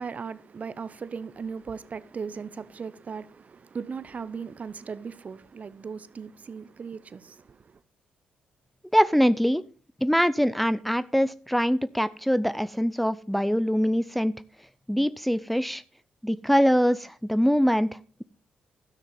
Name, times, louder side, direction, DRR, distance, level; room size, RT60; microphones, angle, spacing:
voice 1, 0.0-7.8, right 5 dB, 45° right, 0.8 m, -38 dB
voice 2, 8.9-9.6 10.0-14.4 14.9-15.8 16.2-18.2, equal, ahead, 0.6 m, -23 dB
12.5 x 6.4 x 5.5 m
supercardioid pair, 55°, 3 cm